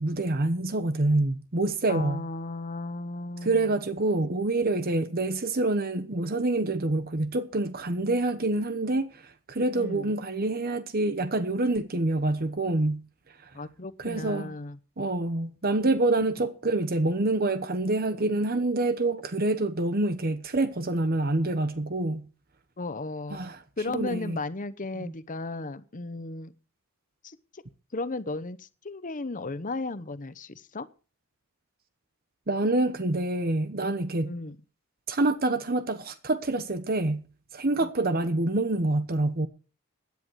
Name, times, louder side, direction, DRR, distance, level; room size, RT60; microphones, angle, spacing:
voice 1, 0.0-2.2 3.4-13.0 13.4-13.5 14.0-14.5 15.0-22.3 23.3-23.6 23.9-24.4 25.0-25.1 32.5-34.3 35.1-37.2 37.5-39.5, right 2 dB, 45° right, 1.0 m, -26 dB
voice 2, 1.9-3.7 9.8-10.1 13.5-14.8 16.2-16.3 22.8-23.4 23.8-26.5 27.2-27.6 27.9-30.9 34.3-34.6 37.8-37.9, left 2 dB, 35° left, 0.9 m, -35 dB
16.5 x 10.5 x 4.7 m
head